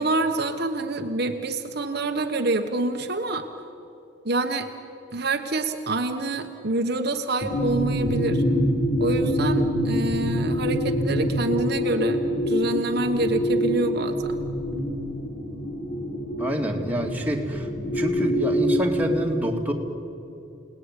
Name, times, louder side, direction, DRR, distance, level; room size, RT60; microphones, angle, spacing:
voice 1, 0.0-3.5 4.2-4.7 5.1-8.4 9.0-14.4, right 2 dB, 55° right, 4 dB, 1.3 m, -26 dB
sound 1, 7.4-19.1, equal, 50° left, 4.0 m, -25 dB
voice 2, 16.4-19.7, equal, 10° right, 0 dB, 2.5 m, -27 dB
29.0 x 19.0 x 9.8 m, 2.8 s
head